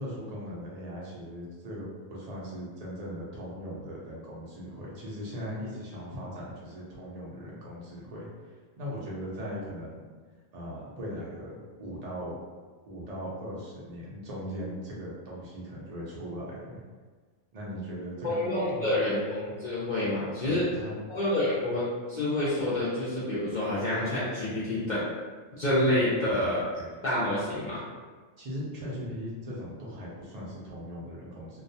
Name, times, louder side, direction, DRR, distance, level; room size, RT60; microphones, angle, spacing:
voice 1, 0.0-10.0 10.5-12.4 12.9-16.8 17.5-18.4 18.7-19.1 20.4-21.0 28.4-31.6, equal, 55° right, -5 dB, 0.4 m, -39 dB
voice 2, 18.2-20.6 21.1-25.0 25.6-27.8, left 1 dB, 60° left, -10 dB, 0.4 m, -28 dB
2.3 x 2.2 x 2.7 m, 1.4 s
omnidirectional pair, 1.4 m